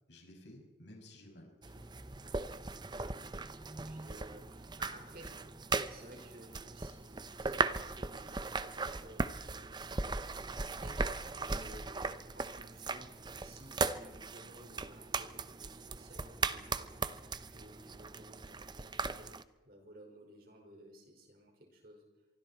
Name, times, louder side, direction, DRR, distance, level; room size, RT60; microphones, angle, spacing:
voice 1, 0.1-1.9 11.5-11.8, left 1 dB, 75° left, 1 dB, 6.5 m, -55 dB
sound 1, 1.6-19.4, right 3 dB, 25° right, 0.7 m, -38 dB
voice 2, 2.9-19.3 19.6-22.1, right 1 dB, 55° right, 2 dB, 5.5 m, -56 dB
25.0 x 24.5 x 4.5 m, 1.0 s
head